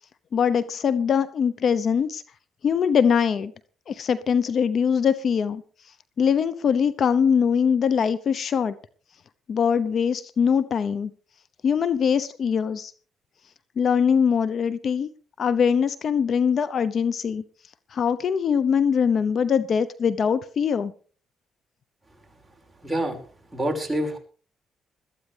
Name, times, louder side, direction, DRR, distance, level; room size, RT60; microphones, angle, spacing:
voice 1, 0.3-2.2 2.6-3.5 3.9-5.6 6.2-8.7 9.5-11.1 11.6-12.9 13.8-15.1 15.4-17.4 17.9-20.9, left 7 dB, 55° left, 15 dB, 0.8 m, -22 dB
voice 2, 22.8-23.2 23.5-24.2, right 1 dB, 5° right, 0 dB, 5.6 m, -26 dB
21.0 x 13.5 x 3.4 m, 0.40 s
cardioid pair, 90°, 0 cm